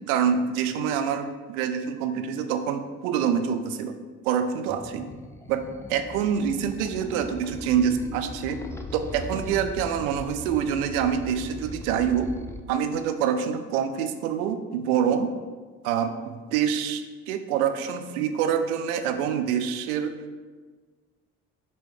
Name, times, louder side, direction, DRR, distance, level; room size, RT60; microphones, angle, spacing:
voice 1, 0.1-3.9 4.2-5.1 5.5-8.6 8.9-12.3 12.7-15.3 15.8-20.1, right 8 dB, 70° right, 8 dB, 0.6 m, -26 dB
sound 1, 4.7-12.6, left 2 dB, 5° left, 0.4 m, -39 dB
6.8 x 3.1 x 4.8 m, 1.4 s
figure-of-eight pair, 55°, 44 cm